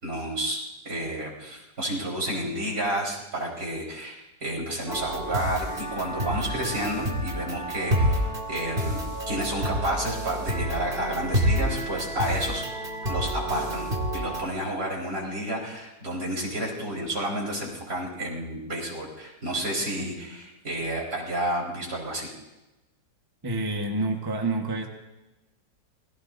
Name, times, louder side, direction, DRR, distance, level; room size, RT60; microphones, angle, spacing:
voice 1, 0.0-9.0 9.3-12.6 13.1-22.3, right 1 dB, 55° right, -4 dB, 5.0 m, -31 dB
sound 1, 4.9-14.5, equal, 35° right, 2.2 m, -29 dB
voice 2, 23.4-24.9, right 2 dB, 15° right, 2 dB, 1.2 m, -28 dB
28.5 x 19.0 x 2.6 m, 1.0 s
omnidirectional pair, 1.8 m